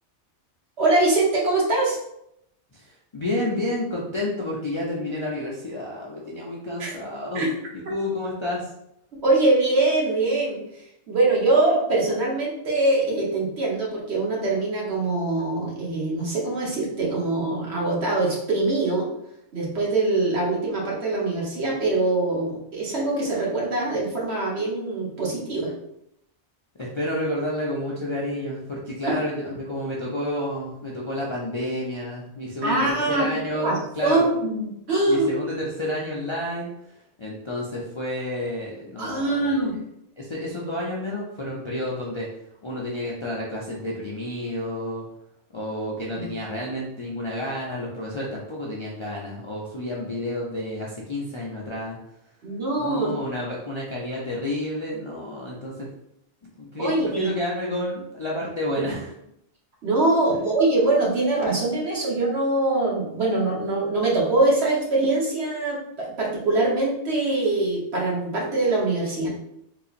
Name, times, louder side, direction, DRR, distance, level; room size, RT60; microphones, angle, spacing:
voice 1, 0.8-2.0 6.8-6.9 7.3-7.5 9.2-10.6 11.1-19.1 19.5-25.7 29.1-29.2 32.6-33.3 33.5-35.3 39.0-39.7 46.2-46.3 52.4-53.1 56.8-57.3 59.8-69.3, right 2 dB, 65° right, -4 dB, 1.2 m, -23 dB
voice 2, 2.7-7.5 7.7-8.6 26.8-34.3 35.1-36.7 37.2-39.5 40.2-42.3 42.6-45.1 45.5-52.0 52.8-55.9 56.6-59.1 60.3-60.4, left 1 dB, 40° left, -5 dB, 0.4 m, -30 dB
3.8 x 2.8 x 2.4 m, 0.78 s
omnidirectional pair, 1.2 m